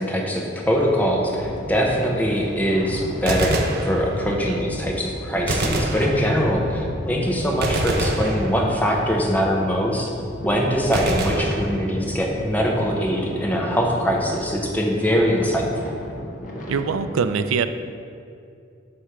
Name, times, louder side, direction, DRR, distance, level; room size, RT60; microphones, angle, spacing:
voice 1, 0.0-10.1 10.4-15.9, equal, 10° left, -1 dB, 0.7 m, -22 dB
sound 1, 0.6-17.0, equal, 40° left, 0.8 m, -34 dB
Gunshot gunfire, 3.1-4.5 5.5-6.7 7.6-9.0 10.9-12.3, right 2 dB, 50° right, 0.6 m, -26 dB
voice 2, 4.2-4.6 16.7-17.7, right 5 dB, 85° right, 10 dB, 0.4 m, -24 dB
7.8 x 3.3 x 5.8 m, 2.4 s
head